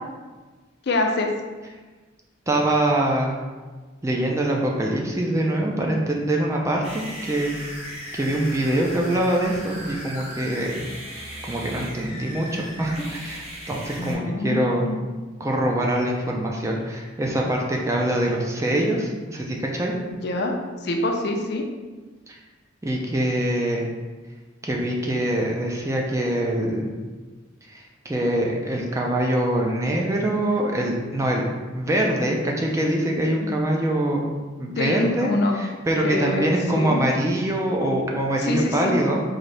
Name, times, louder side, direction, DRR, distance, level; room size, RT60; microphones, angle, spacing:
voice 1, 0.9-1.3 14.0-15.0 20.1-20.6 20.8-21.7 33.4-33.5 34.8-35.6 36.0-37.0 38.4-38.9, left 2 dB, 55° left, 2 dB, 0.4 m, -25 dB
voice 2, 2.5-3.4 4.0-7.5 8.1-10.7 11.4-14.9 15.4-19.9 22.3-22.4 22.8-23.8 24.6-26.9 27.7-31.5 31.7-34.3 34.6-35.3 35.6-39.2, right 1 dB, 15° right, -1 dB, 0.4 m, -24 dB
sound 1, 6.8-14.1, equal, 35° right, 0.8 m, -37 dB
3.9 x 2.7 x 3.3 m, 1.3 s
head